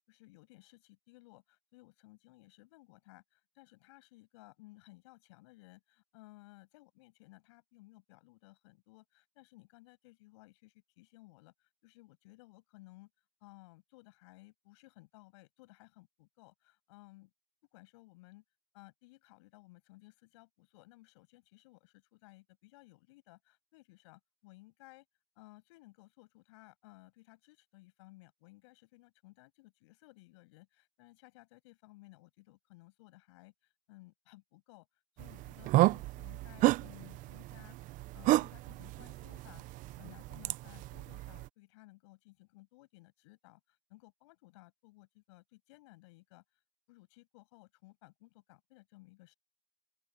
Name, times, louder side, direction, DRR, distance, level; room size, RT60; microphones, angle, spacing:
voice 1, 0.1-13.1 13.4-17.3 17.7-18.4 18.7-25.1 25.4-34.9 35.2-37.8 38.1-46.4 46.9-49.3, left 22 dB, 80° left, 7.4 m, -59 dB
sound 1, 35.2-41.5, right 18 dB, 65° right, 0.9 m, -32 dB
open air
hypercardioid pair, 65°, 15 cm